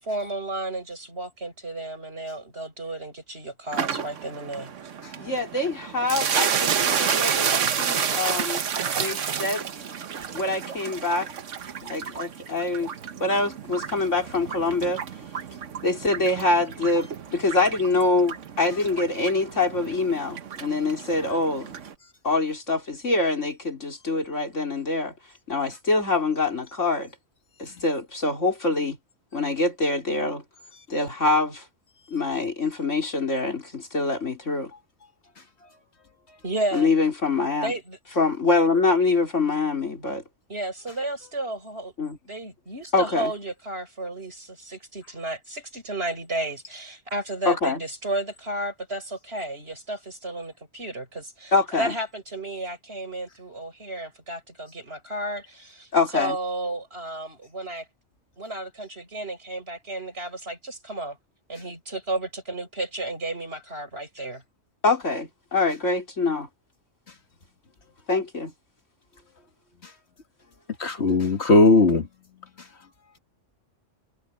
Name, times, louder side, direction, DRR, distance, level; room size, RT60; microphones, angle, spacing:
voice 1, 0.0-4.7 36.4-36.9 37.6-38.0 40.5-41.9 42.3-57.9 58.4-61.2 61.5-64.4, right 1 dB, 55° right, 8.0 m, -33 dB
sound 1, 3.7-21.9, right 7 dB, 85° right, 1.4 m, -30 dB
voice 2, 5.2-9.7 10.3-11.3 11.9-12.9 13.2-15.0 15.8-21.8 22.2-25.1 25.5-27.1 27.6-29.0 29.3-30.4 30.9-31.6 32.1-34.7 36.7-37.7 38.2-40.2 42.0-42.2 42.9-43.3 47.5-47.8 51.5-51.9 55.9-56.4 64.8-66.5 68.1-68.5, left 3 dB, 85° left, 4.5 m, -25 dB
voice 3, 70.8-72.1, left 2 dB, 60° left, 2.0 m, -17 dB
omnidirectional pair, 1.2 m